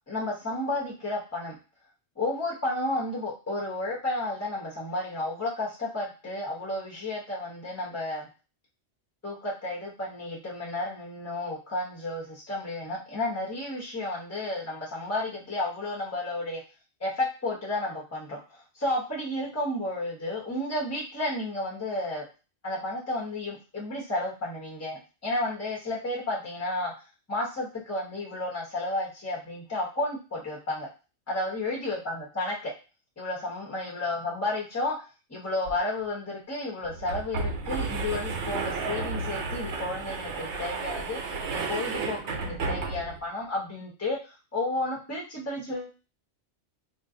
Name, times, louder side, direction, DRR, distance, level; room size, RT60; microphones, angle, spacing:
voice 1, 0.1-1.6 2.2-8.3 9.2-16.6 17.0-22.2 22.6-26.9 27.3-30.9 31.3-32.7 33.2-35.0 35.3-44.2 44.5-45.9, left 2 dB, 15° left, -5 dB, 1.0 m, -32 dB
sound 1, 35.6-35.7 36.0-36.1 36.8-43.3, right 4 dB, 75° right, 1.0 m, -32 dB
2.5 x 2.4 x 3.6 m, 0.33 s
omnidirectional pair, 1.2 m